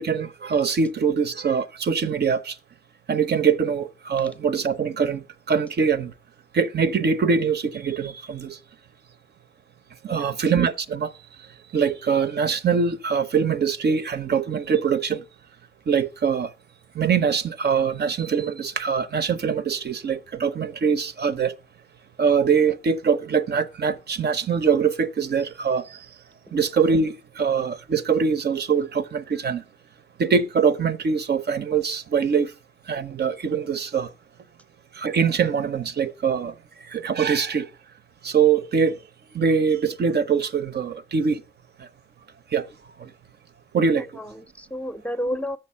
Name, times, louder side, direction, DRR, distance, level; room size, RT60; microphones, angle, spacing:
voice 1, 0.0-2.6 3.1-6.1 6.5-8.6 10.0-11.1 11.7-15.2 15.9-16.5 16.9-21.6 22.2-26.1 26.5-29.6 30.2-32.5 32.9-34.1 34.9-37.7 38.2-39.0 39.3-41.4 41.8-41.9 42.5-42.7 43.0-43.1 43.7-44.1, right 6 dB, 65° right, 0.7 m, -23 dB
voice 2, 44.0-45.6, equal, 5° left, 0.5 m, -31 dB
8.0 x 6.5 x 5.5 m
cardioid pair, 80°, 18 cm